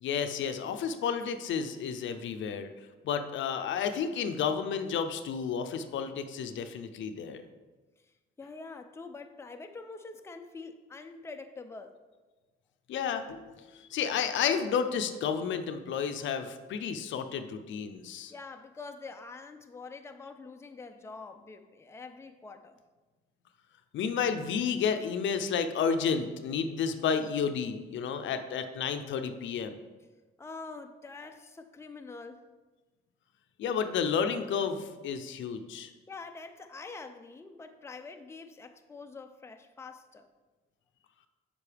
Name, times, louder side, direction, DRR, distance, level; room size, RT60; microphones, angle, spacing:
voice 1, 0.0-2.7 3.0-7.4 12.9-13.5 13.8-18.3 23.9-29.7 33.6-35.9, left 6 dB, 70° left, 8 dB, 0.6 m, -31 dB
voice 2, 8.4-12.0 18.3-22.8 30.4-32.4 36.1-40.3, left 4 dB, 15° left, 6 dB, 0.5 m, -45 dB
8.3 x 5.2 x 3.4 m, 1.3 s
cardioid pair, 90°, 20 cm